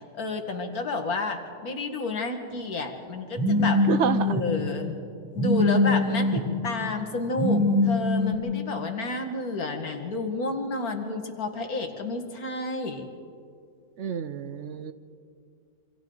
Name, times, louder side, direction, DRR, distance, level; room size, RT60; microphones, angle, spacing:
voice 1, 0.1-3.8 4.2-5.0 5.4-13.1, left 3 dB, 85° left, 4 dB, 2.3 m, -30 dB
Telephone, 3.4-4.4 5.4-6.4 7.4-8.3, left 2 dB, 15° right, 2.4 m, -23 dB
voice 2, 3.9-4.4 14.0-14.9, right 7 dB, 60° right, 12 dB, 1.0 m, -28 dB
27.5 x 26.0 x 4.0 m, 2.3 s
omnidirectional pair, 1.5 m